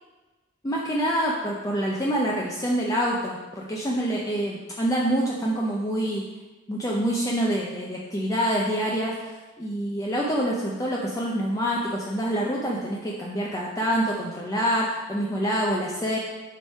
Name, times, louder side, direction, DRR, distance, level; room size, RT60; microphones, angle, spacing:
voice 1, 0.6-6.2 6.7-16.2, equal, 15° left, -3 dB, 0.6 m, -26 dB
7.5 x 3.2 x 5.5 m, 1.2 s
head